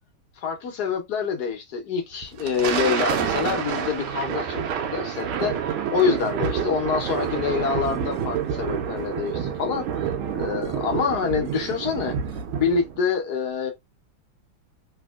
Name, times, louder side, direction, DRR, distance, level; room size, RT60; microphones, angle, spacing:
voice 1, 0.4-4.6 4.9-9.8 10.3-12.1 12.6-13.7, left 6 dB, 60° left, 1.2 m, -26 dB
Thunder, 2.2-13.0, right 7 dB, 90° right, 1.6 m, -28 dB
sound 1, 2.3-12.5, right 11 dB, 70° right, 1.2 m, -43 dB
3.5 x 2.8 x 2.3 m
omnidirectional pair, 2.3 m